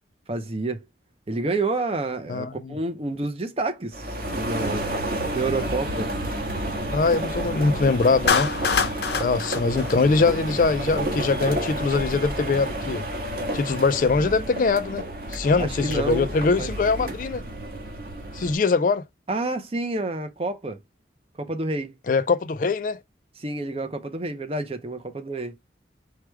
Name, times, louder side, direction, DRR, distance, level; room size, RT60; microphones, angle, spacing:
voice 1, 0.3-0.8 1.3-4.9 5.3-6.1 15.6-16.3 16.6-16.7 17.0-17.1 19.3-20.8 21.4-21.9 23.4-25.6, right 2 dB, 35° right, 0.7 m, -29 dB
voice 2, 2.3-2.8 6.9-8.5 9.2-13.0 13.5-17.4 18.3-19.0 22.1-23.0, left 4 dB, 50° left, 0.4 m, -22 dB
sound 1, 3.9-18.6, right 1 dB, 55° right, 1.5 m, -30 dB
Clapping, 8.3-10.7, left 5 dB, 70° left, 0.7 m, -25 dB
4.7 x 2.3 x 4.5 m
head